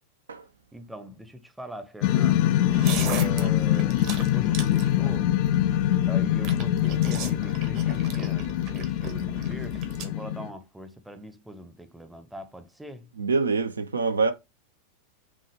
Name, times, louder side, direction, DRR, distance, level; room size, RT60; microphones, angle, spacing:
voice 1, 0.7-2.5 3.0-5.3 6.1-13.1, right 1 dB, 5° right, 0.7 m, -42 dB
sound 1, 2.0-10.5, left 12 dB, 45° left, 0.4 m, -24 dB
sound 2, 2.7-10.1, right 6 dB, 45° right, 0.9 m, -38 dB
voice 2, 13.2-14.3, right 4 dB, 75° right, 0.5 m, -25 dB
6.0 x 2.3 x 3.3 m
figure-of-eight pair, 90°, 0 cm